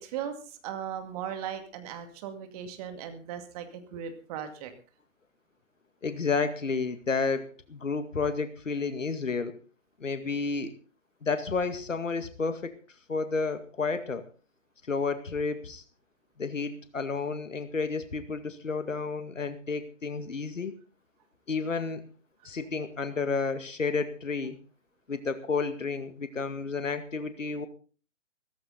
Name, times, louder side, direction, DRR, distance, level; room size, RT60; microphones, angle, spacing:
voice 1, 0.0-4.7, right 9 dB, 30° right, 7 dB, 2.3 m, -38 dB
voice 2, 6.0-9.5 10.0-10.7 11.2-12.7 13.1-14.3 14.9-15.8 16.4-20.7 21.5-22.1 22.4-24.6 25.1-27.7, left 4 dB, 70° left, 10 dB, 2.1 m, -31 dB
16.0 x 14.5 x 4.0 m, 0.38 s
figure-of-eight pair, 130°, 39 cm